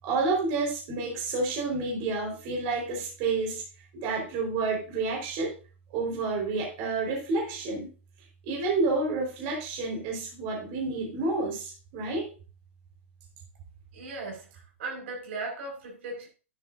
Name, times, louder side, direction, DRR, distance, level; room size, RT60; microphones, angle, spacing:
voice 1, 0.0-3.6 3.9-5.5 5.9-7.9 8.4-12.3, right 3 dB, 45° right, -1 dB, 4.4 m, -29 dB
voice 2, 13.9-16.3, right 3 dB, 65° right, 0 dB, 4.9 m, -37 dB
11.0 x 9.8 x 2.6 m, 0.34 s
hypercardioid pair, 140°, 7 cm